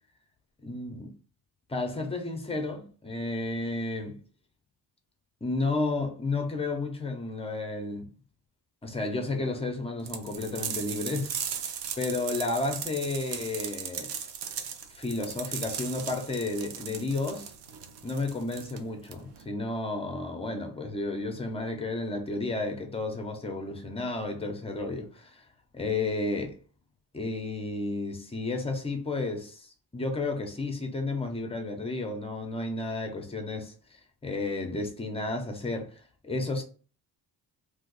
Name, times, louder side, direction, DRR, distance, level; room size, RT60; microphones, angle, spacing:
voice 1, 0.6-1.1 1.7-4.2 5.4-8.1 8.8-11.4 12.0-14.1 14.9-17.5 18.0-25.4 25.7-26.6 27.1-36.6, left 2 dB, 15° left, 0.6 m, -32 dB
sound 1, 10.1-19.5, right 8 dB, 90° right, 0.6 m, -37 dB
2.7 x 2.5 x 3.8 m
cardioid pair, 135°, 41 cm